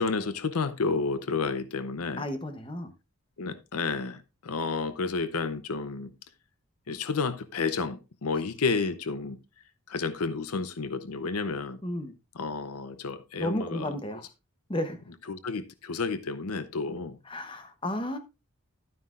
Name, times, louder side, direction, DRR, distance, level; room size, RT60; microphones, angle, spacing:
voice 1, 0.0-2.2 3.4-6.1 6.9-9.4 9.9-11.8 12.4-13.9 15.3-17.2, left 4 dB, 85° left, 0.7 m, -31 dB
voice 2, 2.2-2.9 11.8-12.1 13.4-14.3 14.7-15.0 16.9-17.0 17.2-18.2, left 1 dB, 25° left, 0.9 m, -33 dB
11.5 x 9.5 x 2.5 m
head